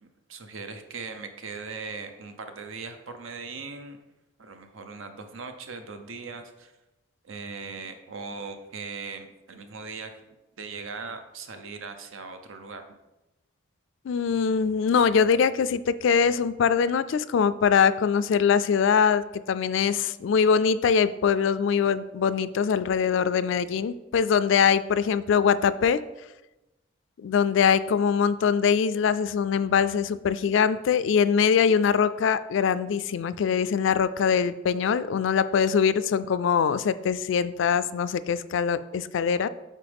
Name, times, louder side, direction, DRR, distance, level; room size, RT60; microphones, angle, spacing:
voice 1, 0.0-4.0 4.4-6.7 7.2-10.2 10.6-13.0, right 4 dB, 85° right, 7 dB, 0.8 m, -39 dB
voice 2, 14.1-26.0 27.2-39.5, left 6 dB, 70° left, 15 dB, 0.3 m, -23 dB
8.4 x 4.3 x 3.5 m, 1.0 s
head